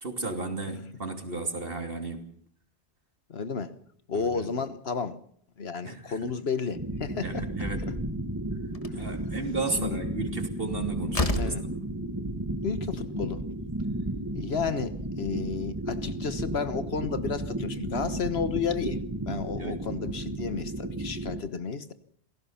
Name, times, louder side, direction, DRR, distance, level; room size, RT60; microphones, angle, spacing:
voice 1, 0.0-2.2 4.1-4.4 5.8-6.3 7.2-7.8 8.9-11.5 19.6-19.8, right 3 dB, 60° right, 3.1 m, -34 dB
voice 2, 3.3-3.7 4.1-5.2 5.6-7.5 9.3-9.4 9.7-10.0 11.4-11.7 12.6-13.4 14.3-19.0 19.3-21.9, left 5 dB, 70° left, 1.5 m, -32 dB
sound 1, 6.7-21.4, right 1 dB, 15° right, 1.9 m, -33 dB
Slam, 8.1-8.2 8.7-9.1 10.6-10.7 11.1-11.7, left 2 dB, 35° left, 1.5 m, -28 dB
27.5 x 17.0 x 5.8 m
omnidirectional pair, 1.1 m